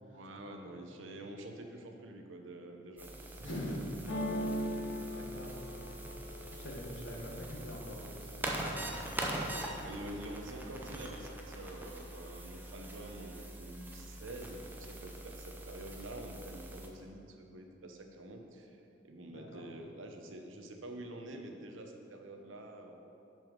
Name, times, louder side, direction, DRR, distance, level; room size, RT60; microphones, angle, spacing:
voice 1, 0.1-3.6 9.8-23.1, right 1 dB, 80° right, 4 dB, 0.8 m, -47 dB
sound 1, 3.0-16.9, right 1 dB, 10° right, 0.7 m, -43 dB
voice 2, 3.4-3.8 4.7-6.0 6.4-9.4 9.7-9.8 19.3-19.6, equal, 70° left, -3 dB, 1.6 m, -45 dB
sound 2, 4.1-7.9 8.4-9.0 9.3-10.1, equal, 90° left, 1.8 m, -40 dB
6.9 x 6.2 x 5.2 m, 2.9 s
head